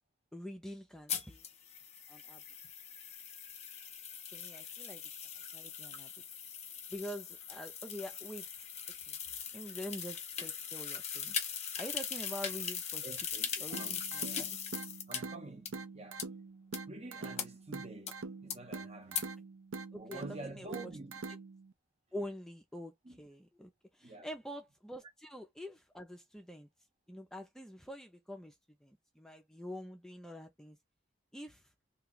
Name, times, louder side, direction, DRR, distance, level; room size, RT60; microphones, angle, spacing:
voice 1, 0.3-1.5 2.1-2.4 4.3-5.1 5.5-6.1 6.9-8.5 9.1-9.2 9.5-11.4 11.8-13.1 13.6-14.6 19.9-20.9 22.1-26.7 27.1-28.6 28.8-30.8 31.3-31.7, equal, 5° left, 0.5 m, -46 dB
sound 1, 1.1-15.2 15.7-15.8 16.2-16.3 16.7-16.8 17.4-17.5 18.1-18.2 18.5-18.6 19.1-19.2, left 7 dB, 35° left, 0.8 m, -40 dB
voice 2, 13.0-14.0 15.1-16.2 16.9-19.3 20.0-21.2 23.0-23.2 24.0-24.3, right 2 dB, 30° right, 0.8 m, -48 dB
sound 2, 13.7-21.7, right 4 dB, 75° right, 0.6 m, -45 dB
2.7 x 2.3 x 3.9 m
head